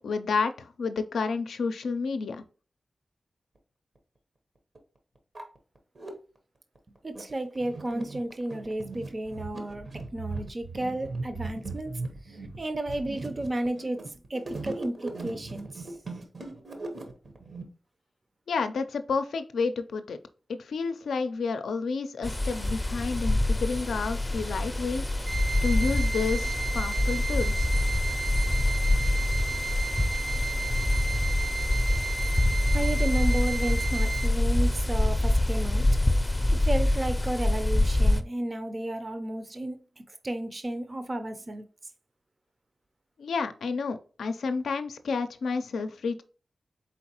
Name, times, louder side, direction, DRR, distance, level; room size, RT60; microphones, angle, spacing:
voice 1, 0.0-2.4 18.5-20.2 20.5-25.0 25.6-27.7 43.2-46.2, left 4 dB, 85° left, 0.4 m, -30 dB
sound 1, 4.0-4.1 4.8-4.9 5.2-6.1 6.8-17.6, right 3 dB, 60° right, 1.0 m, -38 dB
voice 2, 7.0-11.9 12.3-15.9 32.7-35.9 36.5-39.8 40.1-41.6, right 1 dB, 40° right, 0.6 m, -33 dB
sound 2, 22.2-38.2, left 1 dB, 20° left, 0.5 m, -25 dB
sound 3, 25.3-34.3, right 4 dB, 80° right, 2.0 m, -34 dB
4.1 x 3.9 x 2.9 m
cardioid pair, 45°, 0 cm